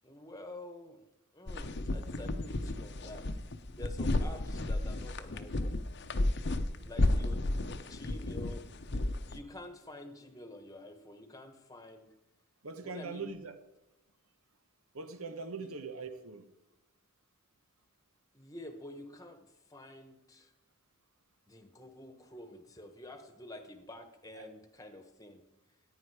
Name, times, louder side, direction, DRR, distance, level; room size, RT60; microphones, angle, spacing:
voice 1, 0.0-1.1 1.3-3.3 3.8-5.9 6.8-7.5 7.9-8.7 9.3-12.1 12.8-13.4 15.6-15.7 18.3-20.5 21.5-25.4, left 1 dB, 15° left, 1.1 m, -49 dB
sound 1, 1.5-9.4, left 2 dB, 50° left, 0.7 m, -33 dB
voice 2, 6.7-7.1 12.6-13.5 14.9-16.4 24.3-24.5, right 4 dB, 80° right, 1.1 m, -42 dB
14.5 x 9.4 x 4.8 m
head